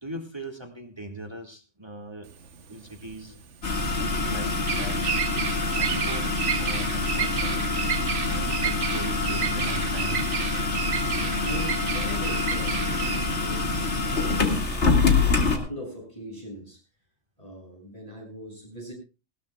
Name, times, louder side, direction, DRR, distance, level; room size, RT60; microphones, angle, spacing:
voice 1, 0.0-2.3 2.7-3.4 3.9-5.0 5.8-6.3 6.6-7.7 8.3-10.3, right 1 dB, 20° right, 4 dB, 2.0 m, -39 dB
Bird vocalization bird call bird song, 2.3-15.5, right 8 dB, 75° right, 1.3 m, -32 dB
sound 1, 3.6-15.6, left 3 dB, 65° left, 2.4 m, -26 dB
voice 2, 11.1-16.8 17.4-18.9, equal, 30° left, -1 dB, 7.0 m, -40 dB
19.5 x 17.0 x 2.3 m, 0.30 s
omnidirectional pair, 1.2 m